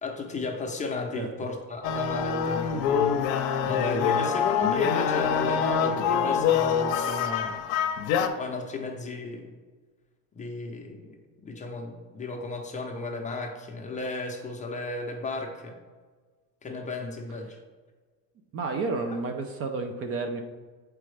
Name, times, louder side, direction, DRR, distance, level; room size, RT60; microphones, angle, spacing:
voice 1, 0.0-7.6 8.3-9.5 10.3-11.2 11.4-15.8 16.6-17.6, left 3 dB, 20° left, 2 dB, 0.7 m, -34 dB
sound 1, 1.8-8.3, left 7 dB, 65° left, 0.7 m, -25 dB
voice 2, 18.5-20.4, right 3 dB, 35° right, 6 dB, 0.6 m, -31 dB
7.2 x 4.7 x 3.3 m, 1.4 s
supercardioid pair, 130°, 39 cm